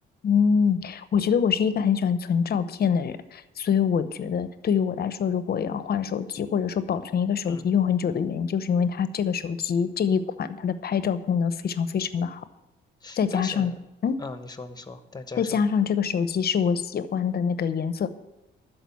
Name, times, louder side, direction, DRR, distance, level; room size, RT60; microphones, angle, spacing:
voice 1, 0.2-12.4 13.2-13.7 14.0-14.2 15.4-18.1, left 7 dB, 50° left, 13 dB, 0.8 m, -25 dB
voice 2, 13.0-13.7 14.2-15.6, left 3 dB, 20° left, 9 dB, 1.2 m, -38 dB
12.5 x 5.1 x 8.3 m, 0.98 s
cardioid pair, 90°, 20 cm